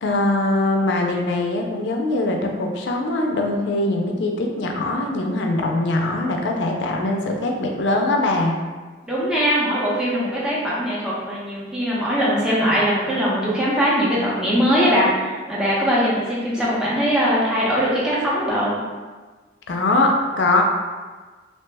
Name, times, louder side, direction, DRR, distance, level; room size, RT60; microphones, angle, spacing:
voice 1, 0.0-8.5 19.7-20.6, left 2 dB, 70° left, 2 dB, 0.4 m, -22 dB
voice 2, 9.1-18.7, equal, 5° right, -8 dB, 0.6 m, -21 dB
2.8 x 2.1 x 3.2 m, 1.4 s
head